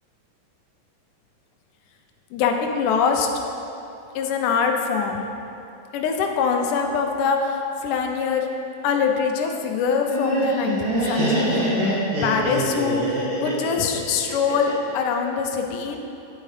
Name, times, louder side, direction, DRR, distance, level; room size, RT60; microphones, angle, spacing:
voice 1, 2.3-3.3 4.2-5.3 5.9-8.5 8.8-11.6 12.2-16.0, left 6 dB, 80° left, 3 dB, 2.1 m, -23 dB
Laughter, 9.9-14.9, right 1 dB, 55° right, 1.4 m, -24 dB
9.2 x 4.7 x 3.2 m, 2.9 s
omnidirectional pair, 3.8 m